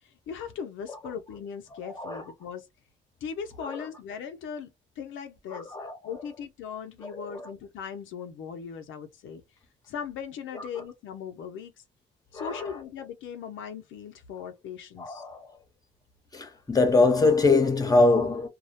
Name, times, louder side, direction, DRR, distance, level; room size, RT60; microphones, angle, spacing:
voice 1, 0.3-2.7 3.2-4.7 5.0-5.7 6.0-9.4 9.9-11.7 12.3-15.4, left 7 dB, 75° left, 0.5 m, -39 dB
voice 2, 1.9-2.2 3.6-3.8 5.5-6.0 7.1-7.5 10.5-10.6 12.3-12.7 15.0-15.4 16.3-18.5, left 3 dB, 20° left, 0.8 m, -23 dB
2.2 x 2.0 x 2.7 m
cardioid pair, 90°, 20 cm